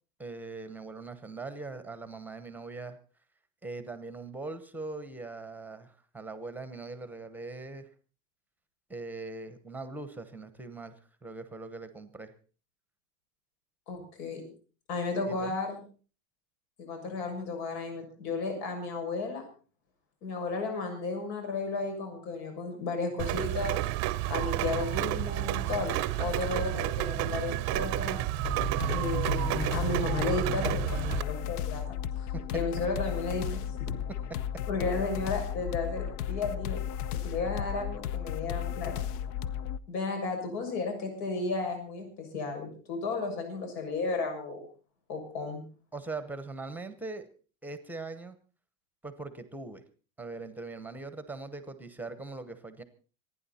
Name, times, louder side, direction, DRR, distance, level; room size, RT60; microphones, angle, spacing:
voice 1, 0.2-3.0 3.6-7.9 8.9-12.3 15.3-15.6 32.3-32.4 45.9-47.3 47.6-48.4 49.0-49.8 50.2-52.8, right 3 dB, 5° right, 11 dB, 0.8 m, -41 dB
voice 2, 13.9-14.4 14.9-15.8 16.8-19.5 20.2-23.8 24.3-28.2 28.9-32.0 32.5-33.6 34.7-36.8 37.2-38.9 39.9-44.6 45.1-45.6, left 3 dB, 80° left, 4 dB, 7.1 m, -33 dB
Rain, 23.2-31.2, right 16 dB, 35° right, 0.6 m, -30 dB
sound 1, 28.4-39.8, left 9 dB, 65° left, 0.9 m, -34 dB
27.0 x 10.0 x 4.2 m, 0.39 s
supercardioid pair, 165°, 50 cm